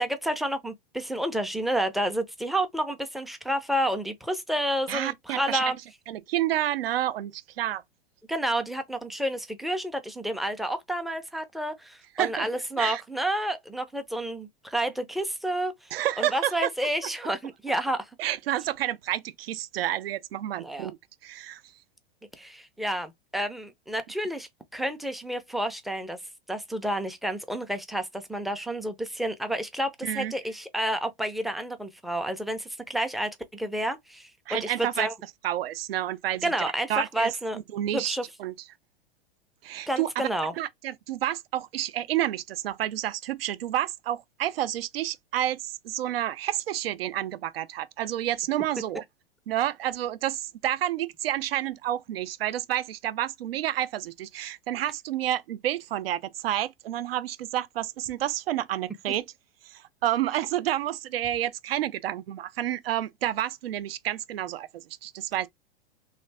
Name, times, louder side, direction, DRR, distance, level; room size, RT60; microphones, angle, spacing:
voice 1, 0.0-5.8 8.3-18.1 20.6-20.9 22.4-26.2 26.5-35.1 36.4-37.6 37.9-38.2 39.9-40.5, right 1 dB, ahead, 0.4 m, -30 dB
voice 2, 4.9-5.7 6.1-7.8 12.2-12.5 12.8-13.0 15.9-16.7 18.2-21.0 21.2-21.6 30.0-30.3 34.5-35.1 35.4-36.5 36.9-37.3 37.7-38.5 39.6-40.3 40.6-49.0 49.5-59.2 59.6-65.5, right 12 dB, 75° right, 0.5 m, -29 dB
3.2 x 2.5 x 3.3 m
hypercardioid pair, 105°, 30 cm